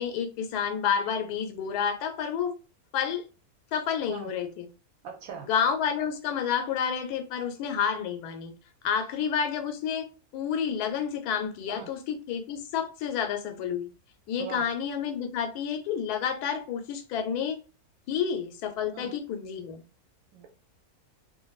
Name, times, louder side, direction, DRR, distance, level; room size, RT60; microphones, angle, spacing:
voice 1, 0.0-2.5 2.9-3.2 3.7-4.7 5.5-8.5 8.8-10.1 10.3-13.9 14.3-17.6 18.1-19.8, left 7 dB, 85° left, 1.1 m, -29 dB
voice 2, 5.0-5.5 11.7-11.9 14.4-14.7 18.9-19.1 20.3-20.5, right 7 dB, 70° right, 0.9 m, -40 dB
2.5 x 2.5 x 2.3 m
omnidirectional pair, 1.6 m